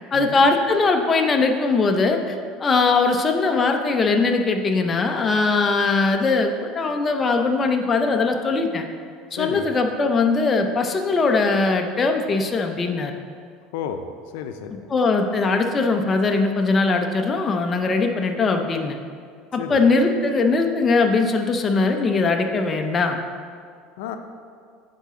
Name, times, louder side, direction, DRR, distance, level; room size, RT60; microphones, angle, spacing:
voice 1, 0.1-8.9 9.3-13.1 14.9-19.0 19.5-23.2, left 3 dB, 20° left, 4 dB, 0.5 m, -20 dB
voice 2, 9.4-9.7 13.7-14.0 14.3-14.9 19.6-19.8 24.0-24.2, left 9 dB, 85° left, 7 dB, 0.5 m, -31 dB
9.4 x 4.1 x 3.7 m, 2.1 s
cardioid pair, 145°, 0 cm